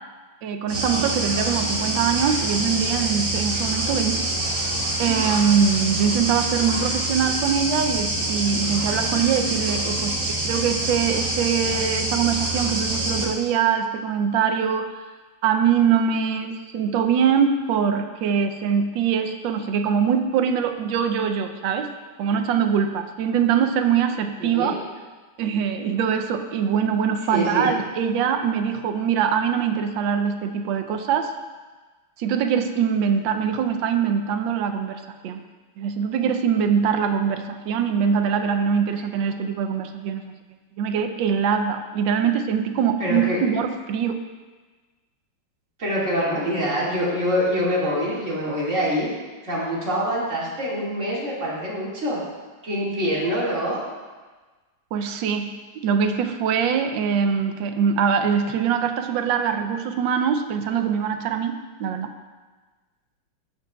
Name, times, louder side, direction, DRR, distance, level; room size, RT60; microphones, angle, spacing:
voice 1, 0.4-4.3 5.0-14.9 15.4-21.9 22.2-24.7 25.4-31.3 32.2-35.4 35.8-40.3 40.8-44.2 54.9-55.5 55.8-62.1, right 7 dB, 85° right, 7 dB, 1.4 m, -23 dB
sound 1, 0.7-13.3, right 2 dB, 60° right, 2.8 m, -26 dB
voice 2, 24.4-24.7 27.3-27.8 43.0-43.4 45.8-49.1 49.4-52.2 52.6-53.8, equal, 40° right, -6 dB, 2.3 m, -25 dB
14.5 x 6.1 x 2.3 m, 1.3 s
omnidirectional pair, 2.0 m